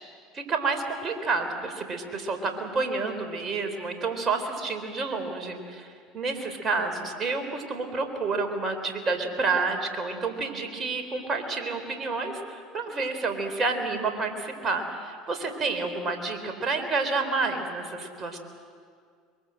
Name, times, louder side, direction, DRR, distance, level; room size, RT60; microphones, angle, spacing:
voice 1, 0.3-18.4, right 3 dB, 35° right, 5 dB, 4.1 m, -29 dB
23.0 x 23.0 x 7.8 m, 2.1 s
hypercardioid pair, 75°, 0 cm